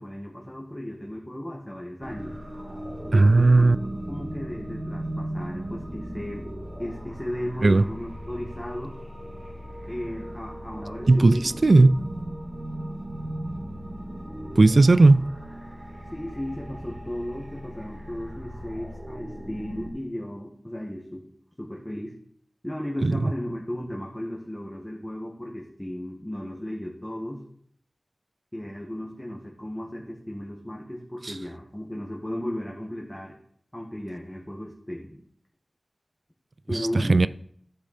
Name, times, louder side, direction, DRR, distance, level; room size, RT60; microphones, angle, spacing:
voice 1, 0.0-2.3 3.0-6.5 6.8-8.9 9.9-11.5 16.1-21.2 21.6-22.2 22.6-27.4 28.5-33.4 33.7-35.2 36.7-37.2, left 1 dB, 15° left, 1.8 m, -35 dB
sound 1, 2.0-19.9, right 1 dB, 50° right, 1.9 m, -37 dB
voice 2, 3.1-3.8 7.6-7.8 11.1-11.4 11.6-12.0 14.6-15.2 23.0-23.1 36.9-37.3, right 2 dB, 65° right, 0.4 m, -16 dB
11.5 x 6.7 x 4.3 m
wide cardioid pair, 50°, 0 cm